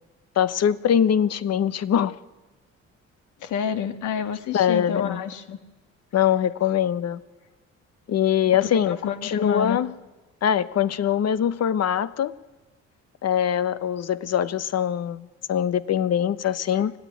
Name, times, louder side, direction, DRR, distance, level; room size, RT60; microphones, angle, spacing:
voice 1, 0.4-2.2 4.5-5.2 6.1-7.2 8.1-9.0 9.2-9.9 10.4-12.3 13.2-17.0, left 9 dB, 55° left, 15 dB, 1.0 m, -23 dB
voice 2, 3.4-5.6 8.6-9.8, left 8 dB, 80° left, 8 dB, 1.7 m, -29 dB
25.0 x 16.0 x 9.2 m, 1.2 s
cardioid pair, 90°, 30 cm